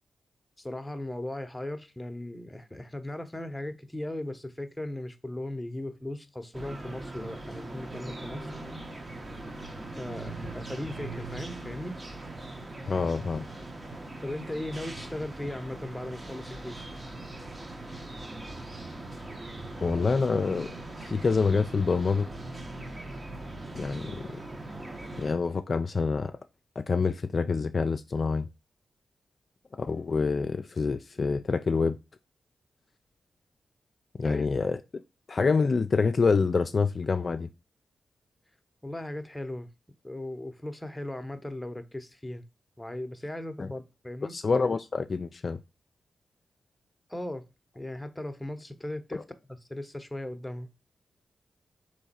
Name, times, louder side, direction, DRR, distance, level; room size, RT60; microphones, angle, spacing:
voice 1, 0.6-8.5 10.0-12.0 14.2-16.9 34.2-34.5 38.8-39.7 40.0-42.4 42.8-44.4 47.1-47.4 47.7-49.2 49.7-50.7, left 1 dB, 10° left, 0.8 m, -37 dB
sound 1, 6.5-25.3, right 2 dB, 35° right, 0.9 m, -40 dB
voice 2, 12.9-13.5 19.8-20.7 21.0-22.3 23.7-24.4 25.2-26.3 26.8-28.5 29.8-32.0 34.2-34.8 35.3-37.5 43.6-43.7 44.3-45.6 49.1-49.2, left 4 dB, 55° left, 0.3 m, -26 dB
3.6 x 3.0 x 4.2 m
supercardioid pair, 45°, 0 cm